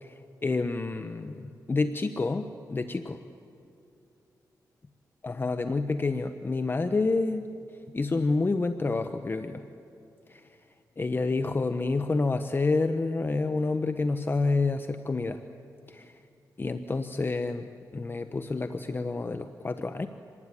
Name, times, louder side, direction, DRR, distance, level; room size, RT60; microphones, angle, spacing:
voice 1, 0.0-3.2 5.2-7.5 7.9-9.6 10.3-10.6 11.0-15.4 15.9-16.2 16.6-20.1, left 3 dB, 30° left, 9 dB, 0.9 m, -29 dB
26.5 x 19.5 x 9.8 m, 2.6 s
cardioid pair, 85°, 7 cm